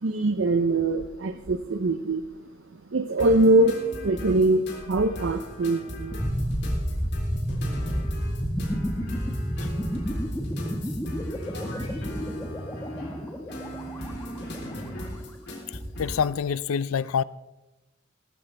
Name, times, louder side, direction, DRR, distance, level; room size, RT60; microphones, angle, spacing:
voice 1, 0.0-2.3 2.7-6.3, right 2 dB, 65° right, 0.6 m, -23 dB
sound 1, 3.2-16.3, equal, 55° left, 3.5 m, -38 dB
sound 2, 6.1-15.0, equal, 10° left, 1.5 m, -30 dB
voice 2, 15.7-17.2, left 7 dB, 85° left, 0.4 m, -27 dB
19.0 x 14.0 x 3.4 m
head